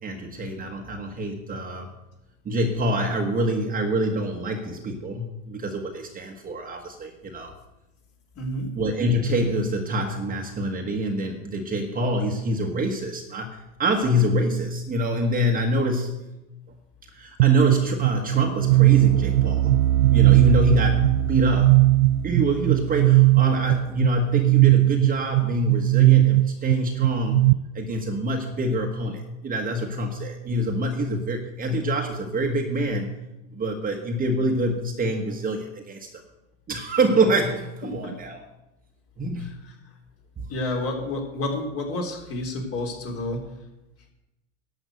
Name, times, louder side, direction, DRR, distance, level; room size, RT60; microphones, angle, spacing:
voice 1, 0.0-1.9 2.4-7.5 8.7-16.2 17.1-19.9 20.1-21.9 22.2-27.4 27.7-33.1 33.5-36.2 36.7-38.4 39.2-39.6 40.4-40.5, equal, 25° right, 2 dB, 1.4 m, -26 dB
voice 2, 8.3-8.7 37.8-38.1 39.4-39.7 40.5-43.5, left 1 dB, 40° left, 1 dB, 3.4 m, -30 dB
sound 1, 17.4-27.5, right 17 dB, 65° right, 0.5 m, -19 dB
12.0 x 5.9 x 7.9 m, 0.98 s
hypercardioid pair, 90°, 37 cm